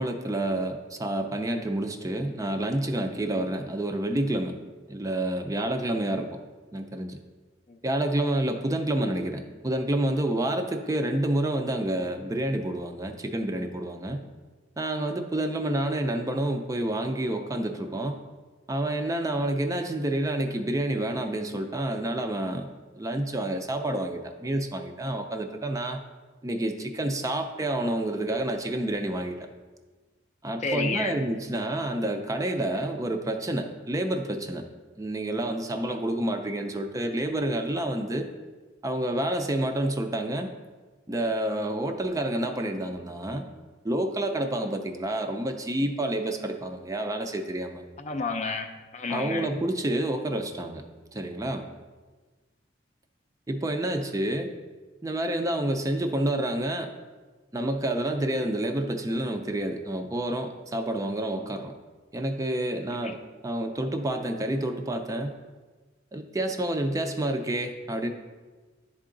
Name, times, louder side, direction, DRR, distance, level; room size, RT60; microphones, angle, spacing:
voice 1, 0.0-4.5 4.9-6.4 6.7-7.2 7.8-14.2 14.8-18.2 18.7-22.7 22.9-26.0 26.4-29.5 30.4-34.6 35.0-38.3 38.8-40.5 41.1-43.4 43.8-47.8 49.1-50.8 51.1-51.7 53.5-54.5 55.0-56.9 57.5-61.7 62.1-65.3 66.1-68.1, right 1 dB, 20° right, 5 dB, 0.4 m, -29 dB
voice 2, 30.6-31.1 48.0-49.5 63.0-63.1, left 4 dB, 40° left, 6 dB, 0.5 m, -31 dB
10.5 x 3.7 x 3.8 m, 1.3 s
head